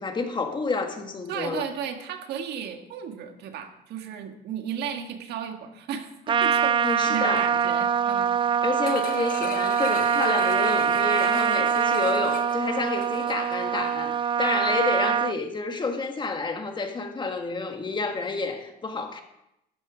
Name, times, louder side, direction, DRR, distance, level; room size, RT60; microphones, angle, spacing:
voice 1, 0.0-1.6 6.8-7.4 8.6-19.2, left 4 dB, 30° left, 5 dB, 1.7 m, -29 dB
voice 2, 1.3-8.4, right 8 dB, 75° right, 6 dB, 1.6 m, -34 dB
Trumpet, 6.3-15.4, right 7 dB, 30° right, 0.4 m, -24 dB
sound 1, 8.8-13.6 14.0-14.1, left 7 dB, 60° left, 1.2 m, -38 dB
13.0 x 10.0 x 5.0 m, 0.84 s
cardioid pair, 110°, 17 cm